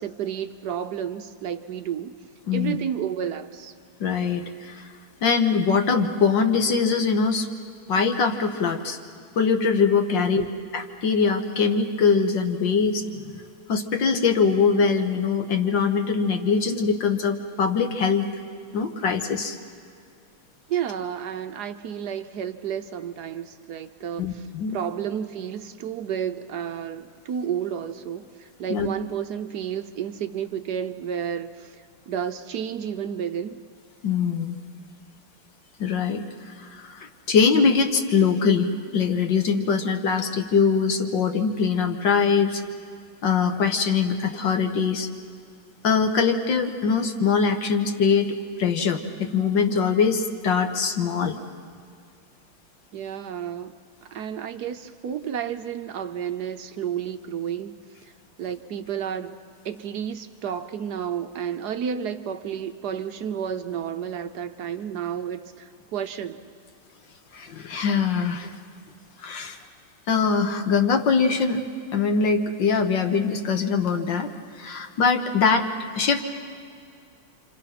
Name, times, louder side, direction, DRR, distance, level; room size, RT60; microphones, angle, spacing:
voice 1, 0.0-2.1 2.5-3.7 10.2-10.5 20.7-31.8 32.1-33.6 52.9-53.8 54.0-57.7 58.4-59.4 59.6-66.5, right 8 dB, 65° right, 9 dB, 1.1 m, -31 dB
voice 2, 2.5-2.8 4.0-4.9 5.2-7.5 7.9-9.0 9.4-10.5 10.7-13.4 13.7-18.2 18.7-19.6 24.2-24.8 28.7-28.9 34.0-34.6 35.8-42.6 43.2-45.1 45.8-48.3 48.6-51.4 67.3-68.6 69.2-69.6 70.1-71.6 71.9-74.3 74.6-75.7 76.0-76.2, left 5 dB, 60° left, 6 dB, 1.9 m, -22 dB
28.5 x 26.5 x 5.9 m, 2.3 s
omnidirectional pair, 2.4 m